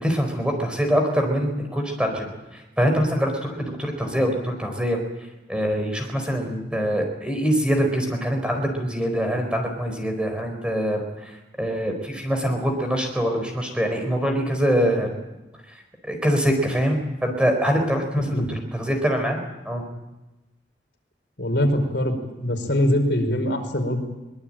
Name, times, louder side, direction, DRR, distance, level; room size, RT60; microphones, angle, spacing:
voice 1, 0.0-2.3 2.5-5.0 5.5-11.3 11.6-15.1 16.0-19.4 19.6-19.8, equal, 5° right, 4 dB, 4.5 m, -24 dB
voice 2, 18.2-18.6 21.4-22.1 22.4-24.0, left 1 dB, 65° left, 4 dB, 4.9 m, -22 dB
24.0 x 21.0 x 8.9 m, 1.0 s
head